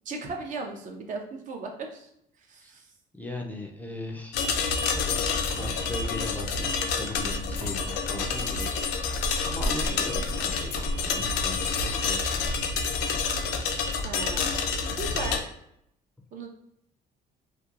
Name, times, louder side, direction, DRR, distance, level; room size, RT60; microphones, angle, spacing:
voice 1, 0.1-2.1 2.4-2.9 9.8-10.0 14.0-15.5 16.3-16.5, right 3 dB, 50° right, 3 dB, 0.5 m, -37 dB
voice 2, 3.1-4.4 4.9-5.3 5.5-8.7 9.4-12.8, left 2 dB, 10° left, 0 dB, 0.3 m, -39 dB
sound 1, 4.3-15.4, left 5 dB, 85° left, 0.4 m, -28 dB
sound 2, 7.1-12.5, equal, 90° right, 1.3 m, -37 dB
2.8 x 2.2 x 2.4 m, 0.76 s
cardioid pair, 110°, 17 cm